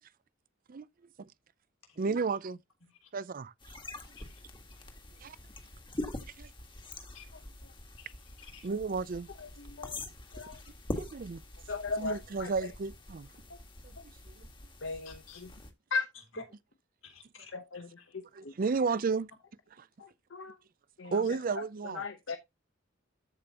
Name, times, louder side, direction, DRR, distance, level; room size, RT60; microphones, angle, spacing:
voice 1, 2.0-2.6 3.1-3.8 5.2-5.4 6.4-6.5 8.6-9.3 10.9-11.4 12.0-13.3 14.4-14.5 18.3-19.3 21.1-22.0, right 4 dB, 45° right, 0.4 m, -32 dB
voice 2, 2.8-3.1 4.2-4.4 7.1-7.3 8.0-8.7 15.0-15.4 16.1-16.4 17.0-18.6, left 7 dB, 85° left, 3.4 m, -55 dB
sound 1, 3.6-15.7, left 1 dB, 25° left, 1.6 m, -44 dB
voice 3, 9.4-10.0 10.3-10.6 11.7-12.7 13.5-13.6 14.8-15.5 15.9-16.1 16.4-16.5 17.5-17.9 18.4-18.5 20.0-20.6 21.0-21.2 21.6-22.4, left 4 dB, 70° left, 1.0 m, -37 dB
13.5 x 5.2 x 2.9 m
head